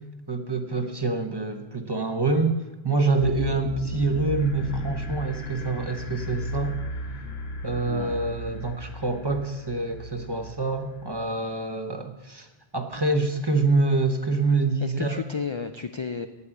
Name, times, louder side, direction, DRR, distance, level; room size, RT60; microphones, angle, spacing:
voice 1, 0.3-2.5 2.8-6.8 7.6-12.5 12.7-15.2, right 3 dB, 25° right, 7 dB, 0.8 m, -26 dB
sound 1, 3.2-11.3, equal, 70° left, 1.4 m, -35 dB
voice 2, 7.7-8.2 13.4-13.5 14.8-16.3, left 5 dB, 55° left, 9 dB, 0.3 m, -33 dB
8.4 x 8.2 x 8.9 m, 1.1 s
omnidirectional pair, 1.1 m